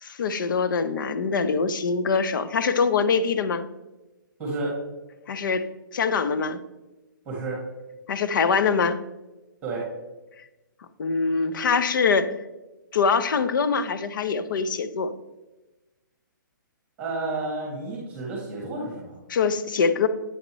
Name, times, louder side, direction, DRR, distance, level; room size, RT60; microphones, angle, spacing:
voice 1, 0.0-3.7 5.3-5.7 5.9-6.6 8.1-9.0 11.0-12.3 12.9-15.1 19.3-20.1, left 5 dB, 70° left, 12 dB, 0.6 m, -23 dB
voice 2, 4.4-4.8 7.3-7.6 9.6-9.9 17.0-19.1, right 2 dB, 15° right, -4 dB, 1.8 m, -31 dB
8.9 x 5.2 x 3.1 m, 1.1 s
hypercardioid pair, 155°, 11 cm